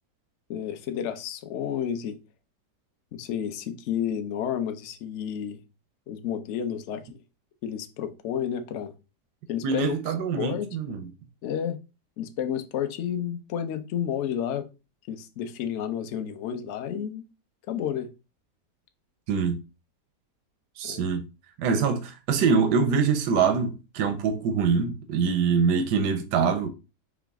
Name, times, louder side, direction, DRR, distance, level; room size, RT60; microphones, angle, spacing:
voice 1, 0.5-2.2 3.1-5.6 6.1-7.2 7.6-8.9 9.5-10.7 11.4-11.8 12.2-14.7 15.1-17.2 17.7-18.1 20.8-21.1, left 9 dB, 60° left, 0.8 m, -31 dB
voice 2, 9.6-11.1 19.3-19.6 20.8-21.2 21.6-26.7, right 5 dB, 90° right, 1.3 m, -24 dB
5.0 x 3.0 x 3.4 m
omnidirectional pair, 1.7 m